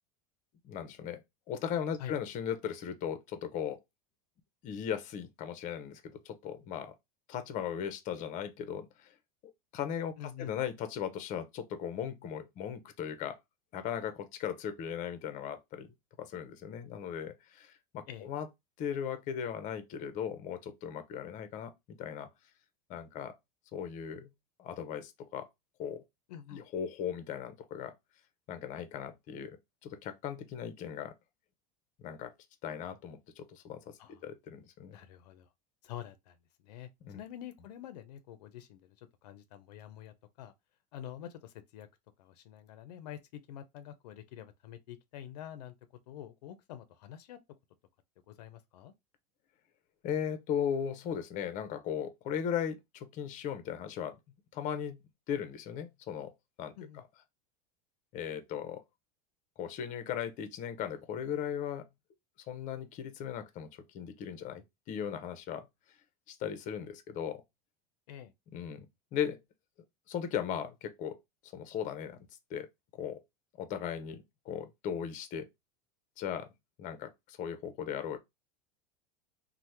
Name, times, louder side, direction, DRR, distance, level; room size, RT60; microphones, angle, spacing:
voice 1, 0.6-3.8 4.6-6.9 7.3-9.1 9.7-10.1 10.4-13.4 13.7-18.5 18.8-22.3 22.9-23.3 23.7-24.3 24.6-25.5 25.8-26.0 26.5-27.9 28.5-29.6 29.8-31.1 32.0-32.3 32.6-35.0 37.0-37.2 50.0-54.2 54.5-56.3 56.6-56.7 58.1-58.8 59.6-61.9 62.5-63.7 63.9-65.7 66.3-67.4 68.5-68.9 69.1-69.4 70.1-71.2 71.5-72.2 72.5-73.2 73.6-75.5 76.2-76.5 76.8-78.2, left 8 dB, 40° left, 0.6 m, -37 dB
voice 2, 10.2-10.5 18.1-18.3 26.3-26.6 34.0-34.2 34.9-35.5 35.8-40.5 40.9-41.9 42.2-45.7 46.1-47.4 48.3-48.9 56.8-57.0 68.1-68.3, left 10 dB, 90° left, 0.5 m, -47 dB
2.8 x 2.1 x 3.2 m
supercardioid pair, 130°, 20 cm